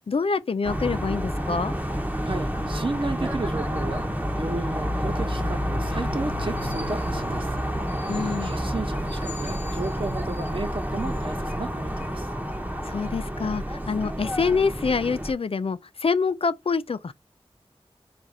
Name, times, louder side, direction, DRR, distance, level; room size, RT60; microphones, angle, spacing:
voice 1, 0.1-1.7 8.1-8.5 12.9-17.1, left 5 dB, 65° left, 0.4 m, -26 dB
sound 1, 0.6-15.3, equal, 15° right, 0.9 m, -29 dB
voice 2, 2.2-4.1 4.4-7.6 7.9-12.3, right 3 dB, 60° right, 1.0 m, -33 dB
4.1 x 2.5 x 4.7 m
wide cardioid pair, 55°, 10 cm